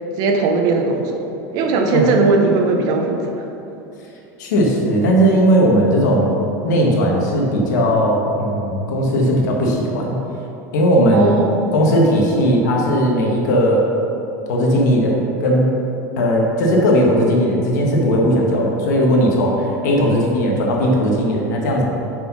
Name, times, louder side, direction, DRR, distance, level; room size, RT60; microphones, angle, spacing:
voice 1, 0.2-1.3 1.5-3.3 11.1-11.6, right 3 dB, 45° right, 3 dB, 0.9 m, -18 dB
voice 2, 4.4-6.3 6.6-10.2 10.7-11.3 11.7-13.9 14.5-15.7 16.2-21.8, equal, 80° left, -1 dB, 1.7 m, -17 dB
5.9 x 5.5 x 5.7 m, 3.0 s
supercardioid pair, 155°, 9 cm